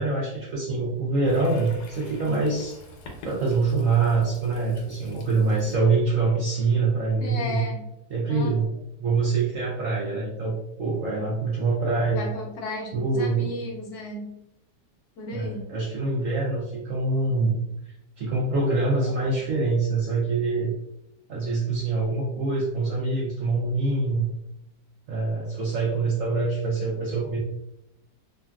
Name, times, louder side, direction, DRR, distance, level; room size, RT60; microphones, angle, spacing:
voice 1, 0.0-2.8 3.2-7.6 8.1-8.7 9.0-12.2 12.9-13.5 15.3-17.6 18.2-20.7 21.3-24.3 25.1-27.4, right 3 dB, 70° right, -4 dB, 0.8 m, -25 dB
Toilet flush, 1.2-7.8, left 1 dB, 85° left, 1.3 m, -46 dB
voice 2, 7.2-7.8 8.3-8.6 10.4-10.5 11.1-11.2 12.1-14.3 15.2-15.6 19.0-19.1, left 2 dB, 70° left, -1 dB, 1.1 m, -35 dB
3.0 x 2.4 x 2.2 m, 0.84 s
omnidirectional pair, 1.9 m